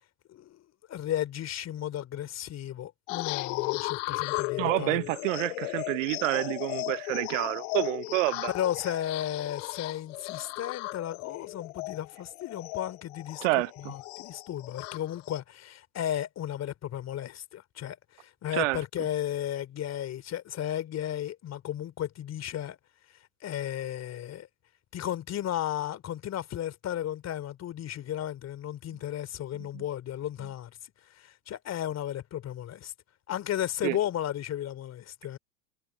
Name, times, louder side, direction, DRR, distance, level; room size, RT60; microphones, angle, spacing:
voice 1, 0.3-0.6 0.9-5.0 8.5-13.5 13.8-22.8 23.4-24.5 24.9-30.8 31.2-32.9 33.3-35.4, left 11 dB, 35° left, 3.1 m, -34 dB
sound 1, 3.1-15.4, left 26 dB, 55° left, 1.0 m, -36 dB
voice 2, 4.6-8.5 13.4-13.7 18.5-18.8 29.7-29.8 33.8-34.0, right 22 dB, 55° right, 0.8 m, -28 dB
figure-of-eight pair, 80°, 45 cm